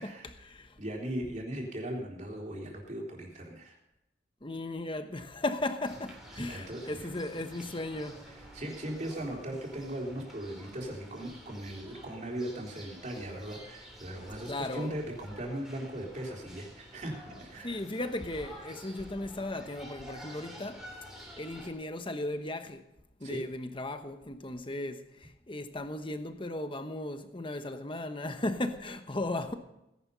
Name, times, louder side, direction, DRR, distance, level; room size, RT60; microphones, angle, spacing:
voice 1, 0.0-0.8 4.4-8.4 14.5-15.0 17.6-20.9 21.4-22.9 23.2-29.5, left 2 dB, 25° left, 1.0 m, -36 dB
voice 2, 0.8-3.8 6.4-7.1 8.3-17.8 23.2-23.4, right 1 dB, 40° right, 3.7 m, -38 dB
sound 1, 5.8-21.7, equal, ahead, 3.1 m, -50 dB
18.0 x 11.0 x 5.6 m
head